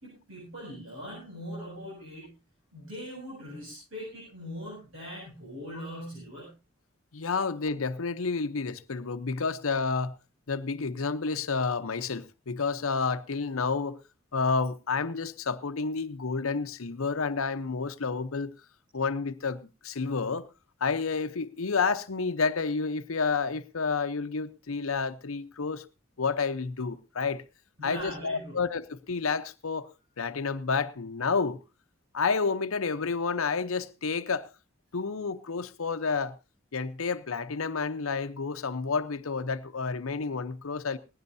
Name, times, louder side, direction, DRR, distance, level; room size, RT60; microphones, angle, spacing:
voice 1, 0.0-2.4 2.7-6.5 27.8-28.6, equal, 70° right, 7.9 m, -41 dB
voice 2, 7.1-10.1 10.5-14.0 14.3-18.5 18.9-20.5 20.8-25.9 26.2-27.4 27.8-29.9 30.2-31.6 32.1-34.5 34.9-36.3 36.7-41.0, left 4 dB, 85° left, 0.8 m, -30 dB
19.0 x 16.0 x 2.7 m
head